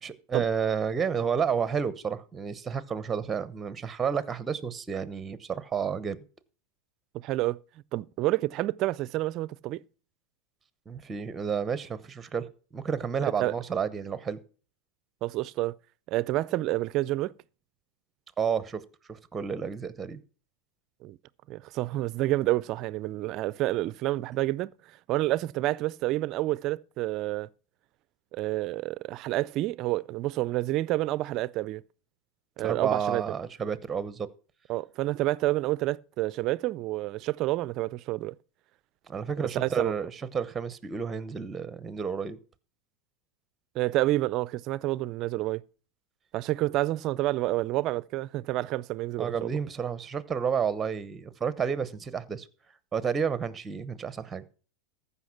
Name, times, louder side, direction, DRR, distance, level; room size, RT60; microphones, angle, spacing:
voice 1, 0.0-6.2 10.9-14.4 18.4-18.8 19.1-20.2 32.6-34.3 39.1-42.4 49.2-52.5 52.9-54.4, right 6 dB, 15° right, 0.9 m, -31 dB
voice 2, 7.2-7.6 7.9-9.8 13.2-13.5 15.2-15.7 16.1-17.3 21.0-21.2 21.5-24.7 25.1-27.5 28.3-31.8 32.6-33.2 34.7-38.3 39.5-39.9 43.7-45.6 46.3-49.6, right 17 dB, 45° right, 0.4 m, -29 dB
14.5 x 5.6 x 5.9 m
supercardioid pair, 135°, 0 cm